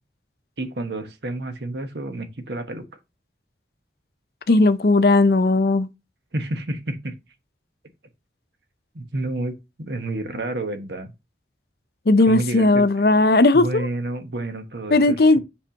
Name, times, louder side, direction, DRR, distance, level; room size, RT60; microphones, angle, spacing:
voice 1, 0.6-2.9 6.3-7.1 8.9-9.5 9.8-11.1 12.3-12.8 13.5-15.4, right 2 dB, 70° right, 1.2 m, -30 dB
voice 2, 4.5-5.9 12.1-13.9 14.9-15.4, left 2 dB, 55° left, 0.6 m, -17 dB
7.4 x 5.3 x 2.9 m
head